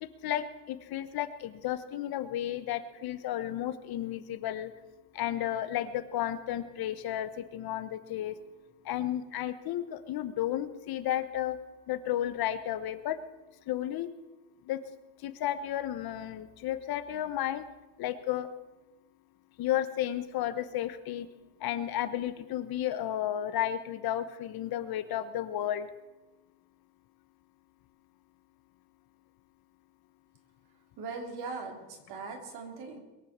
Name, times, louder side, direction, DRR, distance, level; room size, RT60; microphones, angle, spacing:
voice 1, 0.0-4.7 5.1-8.4 8.8-11.6 11.9-13.2 13.7-14.1 14.6-14.8 15.2-17.7 18.0-18.5 19.6-21.3 21.6-25.9, left 12 dB, 50° left, 11 dB, 1.1 m, -33 dB
voice 2, 31.0-33.0, right 4 dB, 55° right, 3 dB, 3.4 m, -40 dB
22.0 x 7.5 x 7.4 m, 1.1 s
cardioid pair, 140°, 46 cm